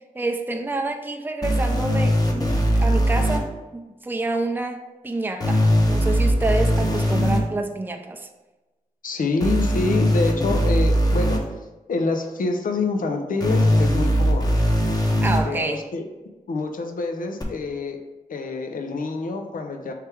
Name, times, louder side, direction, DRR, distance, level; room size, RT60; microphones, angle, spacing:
voice 1, 0.1-5.6 5.9-8.3 15.2-15.8, right 2 dB, 15° right, 3 dB, 0.5 m, -28 dB
sound 1, 1.4-3.4 5.4-7.4 9.4-11.4 13.4-15.4 17.4-17.5, equal, 25° left, 0.9 m, -20 dB
voice 2, 9.0-11.5 11.9-14.6 15.4-16.1 16.5-18.0 18.3-19.9, left 3 dB, 70° left, 5 dB, 0.6 m, -26 dB
3.3 x 3.3 x 4.6 m, 1.1 s
cardioid pair, 40°, 14 cm